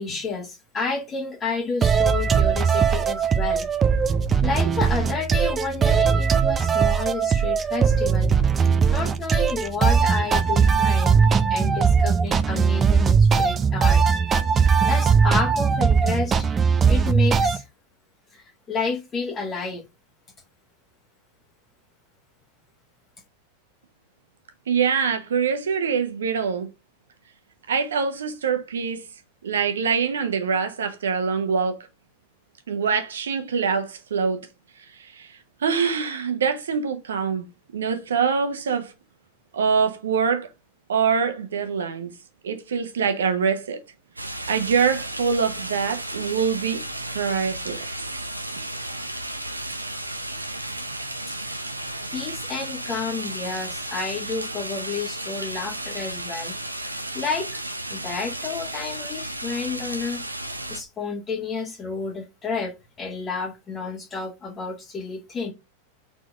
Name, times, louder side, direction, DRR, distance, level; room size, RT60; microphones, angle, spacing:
voice 1, 0.0-3.7 4.4-8.3 8.9-11.2 11.5-14.0 14.9-16.5 16.9-17.7 18.3-19.8 52.1-57.6 57.9-60.2 60.7-65.5, left 4 dB, 20° left, 1.4 m, -30 dB
sound 1, 1.8-17.6, right 6 dB, 20° right, 0.7 m, -20 dB
voice 2, 24.7-26.7 27.7-29.0 29.4-31.8 32.7-34.4 34.9-37.5 37.7-38.9 39.5-40.5 40.9-42.1 42.4-43.8 44.5-46.8 47.1-47.9, right 6 dB, 65° right, 1.3 m, -24 dB
sound 2, 44.2-60.8, right 1 dB, 85° right, 0.7 m, -33 dB
4.6 x 4.4 x 5.7 m
figure-of-eight pair, 90°, 0 cm